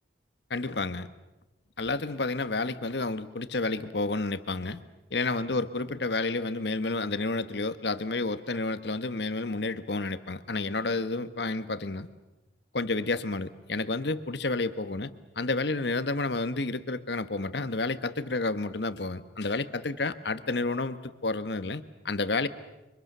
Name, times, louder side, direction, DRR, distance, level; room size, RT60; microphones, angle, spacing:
voice 1, 0.5-1.1 1.8-4.8 5.1-12.1 12.7-15.1 15.4-22.5, left 3 dB, 65° left, 12 dB, 1.3 m, -30 dB
29.5 x 24.5 x 6.8 m, 0.99 s
head